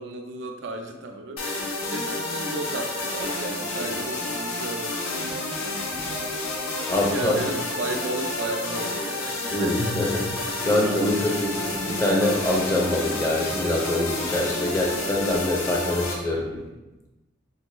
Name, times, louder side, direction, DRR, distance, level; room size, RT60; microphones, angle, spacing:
voice 1, 0.0-5.8 7.1-9.8 11.2-11.5 16.5-16.9, right 2 dB, 60° right, 4 dB, 0.4 m, -34 dB
sound 1, 1.4-16.1, left 2 dB, 85° left, 0.7 m, -30 dB
voice 2, 6.6-7.4 9.5-16.5, left 1 dB, 15° left, -2 dB, 0.5 m, -25 dB
3.8 x 2.2 x 3.0 m, 1.1 s
head